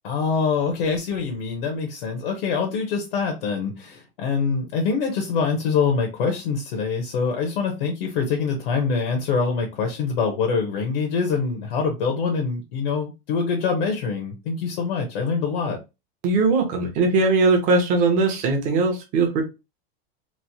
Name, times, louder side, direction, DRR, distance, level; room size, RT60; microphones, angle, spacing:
voice 1, 0.0-15.8, left 5 dB, 65° left, 3 dB, 0.8 m, -24 dB
voice 2, 16.2-19.4, right 3 dB, 25° right, 3 dB, 0.6 m, -20 dB
3.1 x 2.0 x 2.7 m, 0.26 s
supercardioid pair, 165°, 30 cm